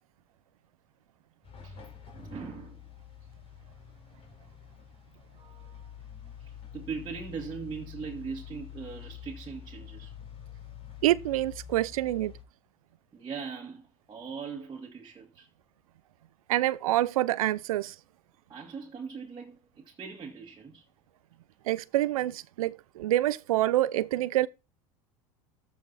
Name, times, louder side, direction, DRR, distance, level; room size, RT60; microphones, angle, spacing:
sound 1, 1.4-12.4, left 9 dB, 35° left, 3.8 m, -47 dB
voice 1, 1.6-2.8 5.4-6.0 6.4-10.1 13.1-15.5 18.5-20.8, right 5 dB, 25° right, 2.2 m, -41 dB
voice 2, 11.0-12.3 16.5-17.9 21.7-24.5, right 15 dB, 85° right, 0.6 m, -26 dB
13.5 x 5.1 x 4.2 m
hypercardioid pair, 90°, 18 cm